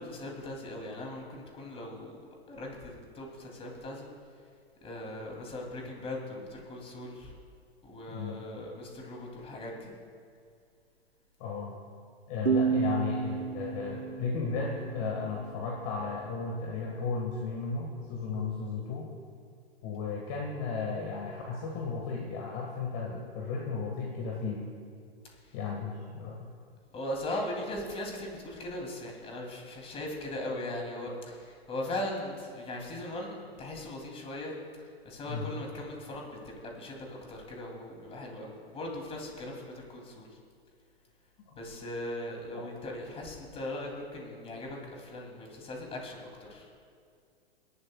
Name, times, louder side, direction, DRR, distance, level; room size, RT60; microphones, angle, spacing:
voice 1, 0.0-2.1 2.5-4.1 4.8-7.3 7.8-9.9 26.9-34.5 35.0-40.3 41.6-46.7, left 1 dB, 20° left, 0 dB, 2.7 m, -39 dB
voice 2, 8.1-8.4 11.4-11.8 12.3-19.1 19.8-24.7 25.5-26.5 35.3-35.5 42.5-42.7, left 4 dB, 35° left, -1 dB, 1.6 m, -35 dB
sound 1, 12.5-15.9, right 6 dB, 85° right, 0.8 m, -31 dB
28.5 x 11.5 x 2.3 m, 2.3 s
figure-of-eight pair, 105°, 32 cm